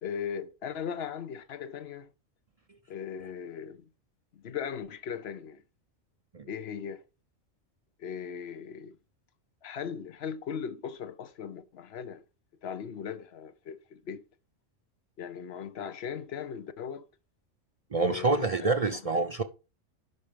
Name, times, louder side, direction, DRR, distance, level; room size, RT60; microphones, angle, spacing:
voice 1, 0.0-2.1 2.9-3.9 4.3-5.6 6.4-7.0 8.0-9.0 9.6-12.2 12.6-14.2 15.2-17.1 17.9-19.0, left 7 dB, 55° left, 1.0 m, -38 dB
voice 2, 17.9-19.4, right 3 dB, 50° right, 0.4 m, -27 dB
11.0 x 4.3 x 5.1 m
omnidirectional pair, 1.3 m